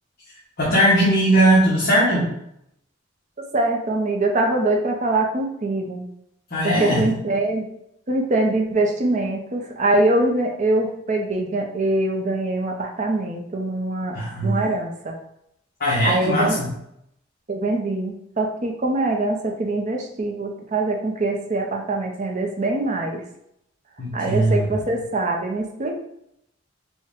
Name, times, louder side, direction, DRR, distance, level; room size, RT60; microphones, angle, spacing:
voice 1, 0.6-2.3 6.5-7.0 14.1-14.7 15.8-16.7 24.0-24.7, right 1 dB, 50° left, -7 dB, 1.0 m, -19 dB
voice 2, 3.4-6.0 6.6-7.7 8.1-15.2 16.0-16.6 17.5-23.2 24.1-25.9, right 2 dB, 35° right, 1 dB, 0.6 m, -23 dB
4.4 x 2.2 x 3.5 m, 0.76 s
head